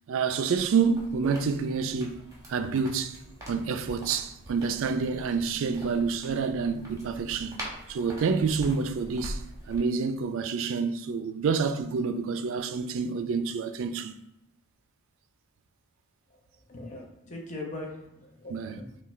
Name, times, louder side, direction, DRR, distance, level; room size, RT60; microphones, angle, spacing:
voice 1, 0.1-2.2 2.5-3.2 3.5-7.6 7.9-9.4 9.7-14.1 18.5-18.8, right 5 dB, 60° right, 0.3 m, -28 dB
sound 1, 0.5-9.8, equal, 15° right, 1.0 m, -44 dB
voice 2, 16.7-19.0, left 2 dB, 35° left, 0.8 m, -40 dB
5.7 x 2.3 x 3.1 m
head